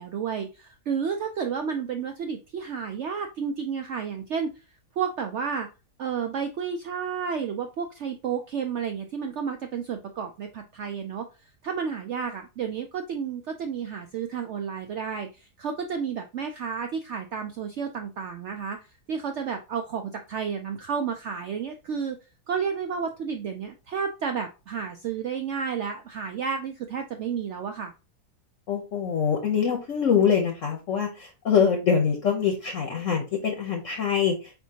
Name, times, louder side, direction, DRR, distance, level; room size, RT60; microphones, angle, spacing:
voice 1, 0.0-4.5 5.0-5.7 6.0-11.3 11.6-18.8 19.1-22.2 22.5-27.9, right 6 dB, 75° right, 6 dB, 0.6 m, -31 dB
voice 2, 28.7-34.5, left 7 dB, 55° left, 3 dB, 1.0 m, -24 dB
4.4 x 4.4 x 2.8 m, 0.30 s
omnidirectional pair, 1.8 m